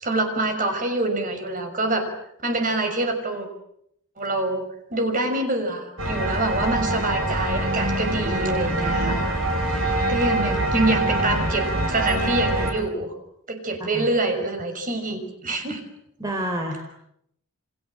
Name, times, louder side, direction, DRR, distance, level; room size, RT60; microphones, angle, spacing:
voice 1, 0.0-2.1 2.4-3.5 4.2-4.6 4.9-9.3 10.1-13.2 13.5-15.8, right 2 dB, 35° right, 5 dB, 5.9 m, -25 dB
sound 1, 6.0-12.7, right 1 dB, 60° right, 7.9 m, -24 dB
voice 2, 16.2-16.8, equal, 15° right, 3 dB, 3.6 m, -28 dB
29.0 x 26.0 x 7.6 m, 0.74 s
head